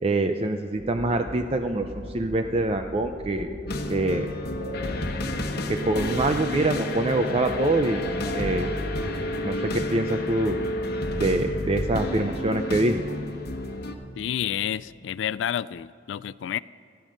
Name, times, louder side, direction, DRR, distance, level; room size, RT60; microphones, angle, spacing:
voice 1, 0.0-3.5 3.9-4.3 5.7-8.0 8.3-8.7 9.4-10.6 11.2-13.0, right 2 dB, 35° right, 6 dB, 0.5 m, -25 dB
sound 1, 0.8-15.0, left 1 dB, 15° right, 2.6 m, -43 dB
sound 2, 3.1-6.3 6.6-9.6, equal, 70° right, 3.0 m, -41 dB
sound 3, 3.7-13.9, left 1 dB, 60° left, 1.2 m, -30 dB
voice 2, 14.2-16.6, left 10 dB, 75° left, 17 dB, 0.3 m, -29 dB
18.0 x 12.5 x 5.2 m, 2.5 s
head